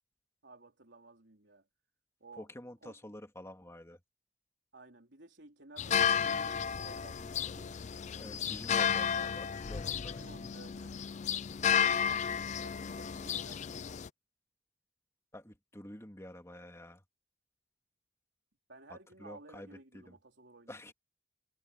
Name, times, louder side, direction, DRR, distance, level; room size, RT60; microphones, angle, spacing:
voice 1, 0.4-1.7 2.2-2.5 2.8-3.0 4.7-7.8 9.8-11.0 11.8-14.0 18.7-20.8, right 2 dB, 75° right, 3.9 m, -55 dB
voice 2, 2.4-4.0 8.2-10.2 15.3-17.0 18.9-20.2 20.7-20.9, left 1 dB, 15° left, 2.6 m, -49 dB
sound 1, 5.8-14.1, left 7 dB, 40° left, 0.4 m, -32 dB
head